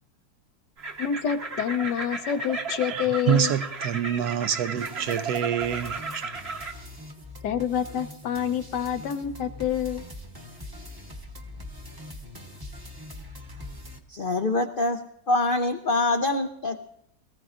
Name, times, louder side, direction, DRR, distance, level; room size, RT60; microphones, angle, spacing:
sound 1, 0.8-6.7, right 3 dB, 40° right, 1.2 m, -34 dB
voice 1, 1.0-3.5 7.4-10.1, left 8 dB, 80° left, 1.5 m, -27 dB
voice 2, 2.9-6.3, right 9 dB, 70° right, 1.1 m, -27 dB
sound 2, 4.8-14.0, left 1 dB, 15° right, 0.8 m, -43 dB
voice 3, 14.1-16.9, left 2 dB, 60° left, 0.5 m, -25 dB
22.5 x 15.0 x 2.5 m
omnidirectional pair, 1.8 m